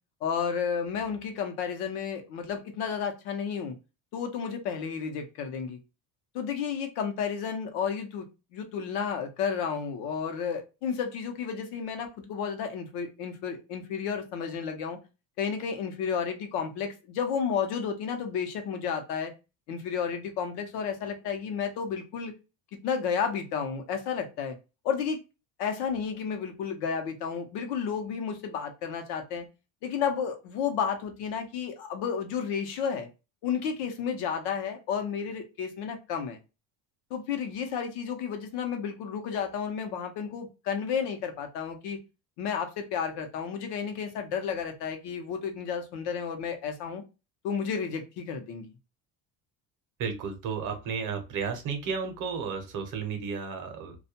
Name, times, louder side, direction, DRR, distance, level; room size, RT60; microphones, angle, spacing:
voice 1, 0.2-3.8 4.1-5.8 6.3-8.3 8.5-15.0 15.4-19.3 19.7-22.3 22.8-24.6 24.8-25.2 25.6-29.5 29.8-33.1 33.4-36.4 37.1-42.0 42.4-47.0 47.4-48.7, left 7 dB, 70° left, 5 dB, 0.8 m, -32 dB
voice 2, 50.0-54.0, right 6 dB, 50° right, 5 dB, 0.7 m, -33 dB
2.3 x 2.1 x 2.7 m, 0.28 s
cardioid pair, 160°, 41 cm